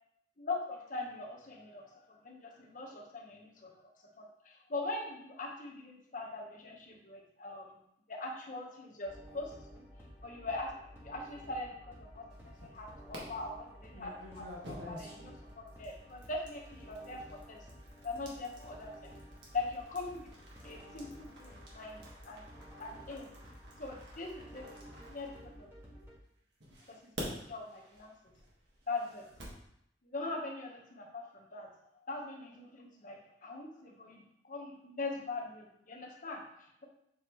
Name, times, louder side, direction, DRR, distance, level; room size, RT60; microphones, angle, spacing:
voice 1, 0.4-3.7 4.2-7.8 8.1-9.8 10.2-17.6 18.0-19.2 19.5-20.3 20.6-22.4 22.8-23.3 23.8-25.7 26.9-28.1 28.9-29.3 30.0-31.7 32.1-36.8, left 3 dB, 50° left, 0 dB, 1.2 m, -42 dB
sound 1, 9.1-26.1, equal, 15° right, 1.8 m, -53 dB
sound 2, 12.3-13.2 13.9-26.0 26.6-29.6, equal, 80° right, 1.7 m, -50 dB
7.6 x 4.6 x 3.1 m, 0.75 s
head